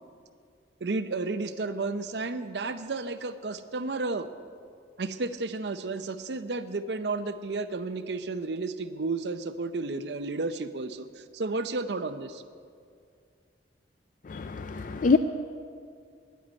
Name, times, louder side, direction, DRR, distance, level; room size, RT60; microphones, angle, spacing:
voice 1, 0.8-4.3 5.0-12.4, right 3 dB, 70° right, 11 dB, 0.7 m, -32 dB
voice 2, 14.3-15.2, left 4 dB, 45° left, 9 dB, 0.4 m, -25 dB
10.5 x 9.3 x 9.6 m, 2.2 s
head